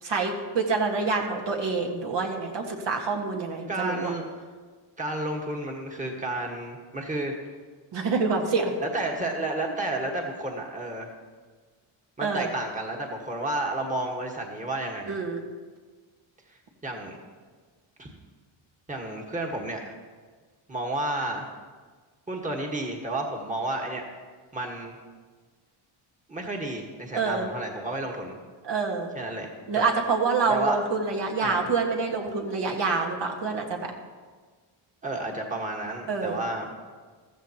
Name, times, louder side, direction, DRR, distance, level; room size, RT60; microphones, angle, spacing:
voice 1, 0.0-4.1 7.9-8.7 12.2-12.5 15.1-15.4 27.1-27.5 28.6-29.1 29.7-33.9 36.1-36.4, right 4 dB, 60° right, 0 dB, 1.7 m, -27 dB
voice 2, 3.7-4.2 5.0-7.3 8.8-11.1 12.2-15.2 16.5-17.2 18.0-18.1 18.9-19.9 20.7-21.5 22.3-24.0 24.5-24.9 26.3-28.3 29.1-29.8 30.5-30.8 31.4-31.7 35.0-36.7, right 2 dB, 15° right, 1 dB, 1.5 m, -31 dB
14.5 x 14.5 x 3.0 m, 1.5 s
cardioid pair, 125°, 49 cm